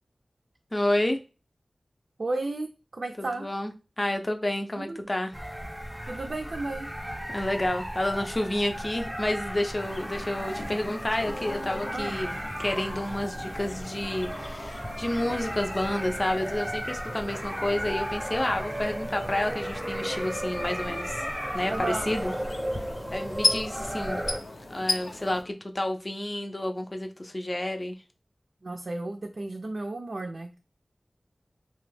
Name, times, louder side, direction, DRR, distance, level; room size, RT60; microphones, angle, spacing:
voice 1, 0.7-1.2 3.2-5.3 7.3-21.3 21.5-22.3 23.1-24.2 24.7-28.0, left 1 dB, 35° left, 0.5 m, -30 dB
voice 2, 2.2-3.4 4.8-5.1 6.1-6.9 11.9-12.2 21.7-22.1 28.6-30.6, right 2 dB, 70° right, 0.4 m, -33 dB
sound 1, 5.3-24.4, equal, 10° right, 0.7 m, -35 dB
sound 2, 9.8-25.4, left 2 dB, 80° left, 0.6 m, -37 dB
2.9 x 2.2 x 3.2 m
wide cardioid pair, 60°, 0 cm